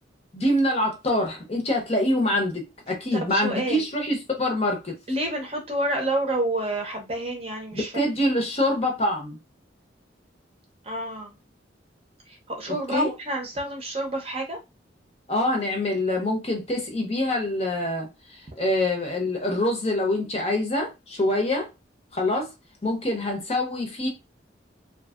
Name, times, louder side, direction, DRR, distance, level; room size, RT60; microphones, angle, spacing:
voice 1, 0.3-5.0 7.7-9.4 12.7-13.1 15.3-18.1 18.6-21.7 22.1-22.5 22.8-24.1, left 1 dB, 35° left, 0.7 m, -25 dB
voice 2, 3.3-3.8 5.1-7.9 10.9-11.3 12.5-14.6, right 1 dB, 30° right, 0.7 m, -28 dB
2.7 x 2.6 x 2.4 m
head